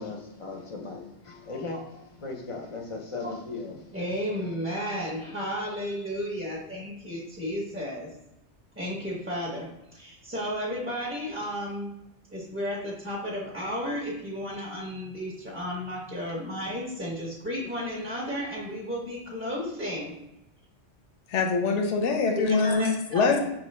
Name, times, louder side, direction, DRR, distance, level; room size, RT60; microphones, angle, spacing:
voice 1, 0.0-1.9 2.2-3.8, left 3 dB, 40° left, 0.5 m, -37 dB
voice 2, 3.9-8.1 8.8-9.7 9.9-11.9 12.3-20.1 22.3-23.4, equal, 15° right, 0.5 m, -33 dB
voice 3, 21.3-23.4, left 4 dB, 90° left, 0.9 m, -24 dB
5.3 x 2.4 x 3.2 m
omnidirectional pair, 1.2 m